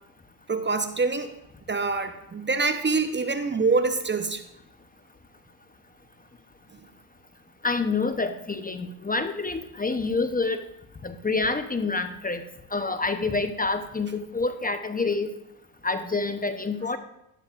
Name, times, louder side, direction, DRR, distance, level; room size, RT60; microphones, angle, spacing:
voice 1, 0.5-1.3 1.7-4.4, right 4 dB, 25° right, 8 dB, 0.9 m, -25 dB
voice 2, 7.6-10.6 11.0-12.4 12.7-15.3 15.8-17.0, left 3 dB, 20° left, 9 dB, 0.8 m, -27 dB
12.0 x 11.0 x 2.5 m, 0.82 s
supercardioid pair, 65°, 48 cm